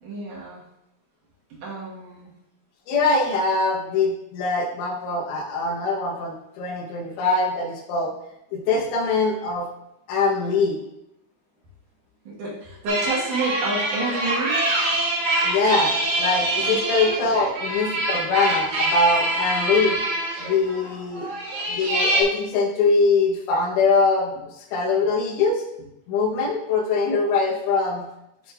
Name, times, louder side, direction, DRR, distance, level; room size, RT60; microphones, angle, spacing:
voice 1, 0.0-0.6 1.5-2.3 12.3-14.6 16.6-16.8, right 2 dB, 75° right, -6 dB, 1.9 m, -29 dB
voice 2, 2.9-8.1 8.5-9.7 10.1-10.8 15.4-20.0 20.4-21.3 21.7-25.6 26.1-28.0, left 3 dB, 80° left, 0 dB, 3.3 m, -23 dB
sound 1, 12.9-22.2, right 1 dB, 50° right, 2.3 m, -25 dB
11.5 x 4.4 x 2.4 m, 0.86 s
omnidirectional pair, 5.8 m